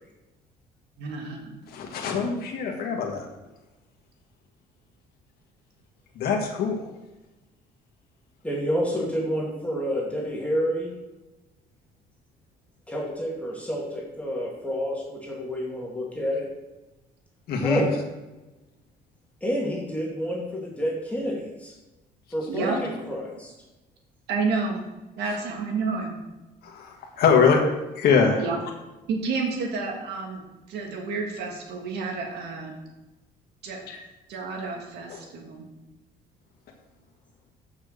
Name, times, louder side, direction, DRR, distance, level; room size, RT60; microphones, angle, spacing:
voice 1, 1.0-1.6 22.5-22.8 24.3-24.9 25.2-26.2 28.4-28.6 29.1-30.4 30.7-32.7 33.6-33.8 34.3-35.7, right 4 dB, 80° right, 1 dB, 2.2 m, -30 dB
voice 2, 1.7-3.3 6.1-6.8 17.5-17.8 26.6-27.6 28.0-28.4 33.9-34.0 35.1-35.2, left 6 dB, 65° left, 1 dB, 1.5 m, -23 dB
voice 3, 8.4-10.9 12.9-16.5 17.6-17.9 19.4-21.7 22.3-23.5, equal, 10° left, -3 dB, 2.2 m, -29 dB
6.8 x 5.8 x 6.6 m, 1.1 s
cardioid pair, 110°, 17 cm